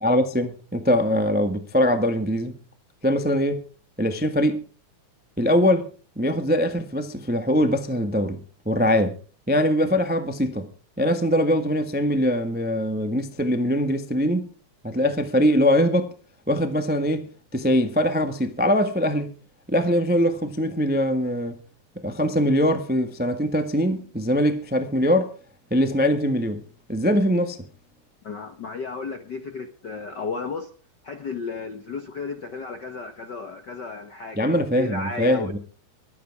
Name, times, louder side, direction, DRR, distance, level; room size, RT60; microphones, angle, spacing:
voice 1, 0.0-2.6 3.0-3.6 4.0-4.6 5.4-5.9 6.1-9.2 9.5-10.7 11.0-14.4 14.8-16.1 16.5-19.3 19.7-21.6 22.0-25.3 25.7-26.6 26.9-27.6 34.3-35.6, equal, 10° right, 0.4 m, -22 dB
voice 2, 28.2-30.7 31.0-35.6, left 4 dB, 60° left, 1.1 m, -33 dB
23.0 x 10.0 x 4.8 m
omnidirectional pair, 3.6 m